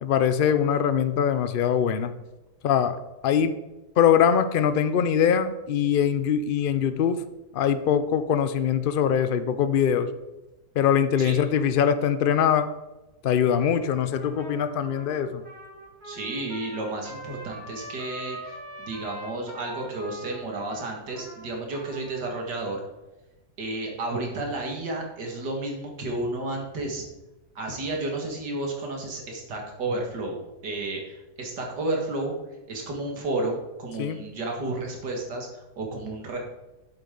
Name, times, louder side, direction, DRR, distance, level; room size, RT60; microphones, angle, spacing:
voice 1, 0.0-2.1 2.6-3.0 3.2-3.6 4.0-7.2 7.5-10.1 10.8-12.7 13.2-15.4 34.0-34.2, left 8 dB, 75° left, 11 dB, 0.5 m, -22 dB
Trumpet, 14.1-22.4, right 1 dB, 35° right, 3.6 m, -42 dB
voice 2, 16.0-22.8 23.6-27.0 27.6-32.3 32.7-36.4, right 2 dB, 85° right, 1 dB, 2.5 m, -32 dB
10.5 x 8.5 x 3.9 m, 1.0 s
omnidirectional pair, 1.8 m